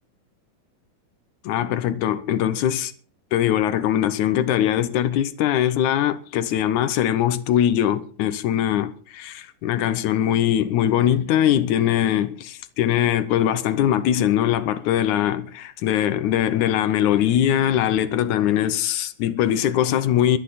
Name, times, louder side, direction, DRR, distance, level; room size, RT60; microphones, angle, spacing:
voice 1, 1.4-2.9 3.3-20.4, left 11 dB, 70° left, 2.1 m, -21 dB
22.0 x 11.5 x 4.2 m
omnidirectional pair, 4.0 m